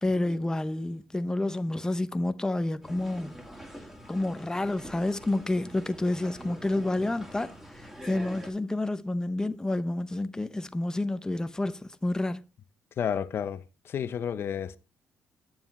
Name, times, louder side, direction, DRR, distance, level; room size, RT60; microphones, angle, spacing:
voice 1, 0.0-3.4 4.1-12.4, left 2 dB, 15° left, 0.8 m, -29 dB
sound 1, 2.8-8.5, equal, 10° right, 2.3 m, -45 dB
voice 2, 13.0-14.8, left 8 dB, 60° left, 0.7 m, -31 dB
8.9 x 7.1 x 3.1 m
cardioid pair, 75°, 5 cm